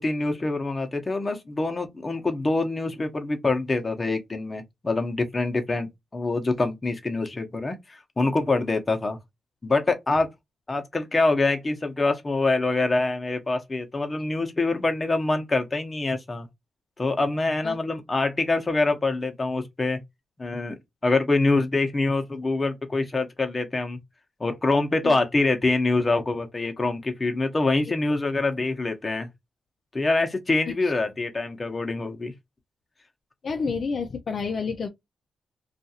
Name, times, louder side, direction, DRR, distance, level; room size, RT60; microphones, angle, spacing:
voice 1, 0.0-9.2 9.6-10.3 10.7-16.5 17.0-20.0 20.4-20.8 21.0-24.0 24.4-29.3 29.9-32.3, left 3 dB, 30° left, 0.8 m, -25 dB
voice 2, 33.4-34.9, left 5 dB, 60° left, 0.4 m, -29 dB
2.5 x 2.4 x 2.7 m
cardioid pair, 65°, 0 cm